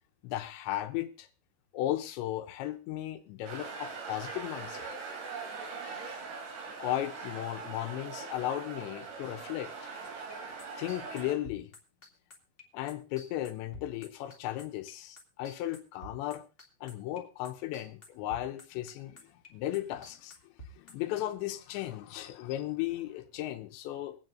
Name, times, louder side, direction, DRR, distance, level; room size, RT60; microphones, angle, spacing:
voice 1, 0.2-1.3 1.7-4.9 6.8-9.9 10.8-11.7 12.7-16.4 16.8-24.2, left 14 dB, 90° left, 6 dB, 3.3 m, -36 dB
sound 1, 3.5-11.4, right 4 dB, 70° right, 4.9 m, -41 dB
sound 2, 10.0-17.2 17.4-21.2, left 1 dB, 45° left, 0.7 m, -50 dB
24.5 x 9.1 x 2.6 m, 0.35 s
omnidirectional pair, 5.0 m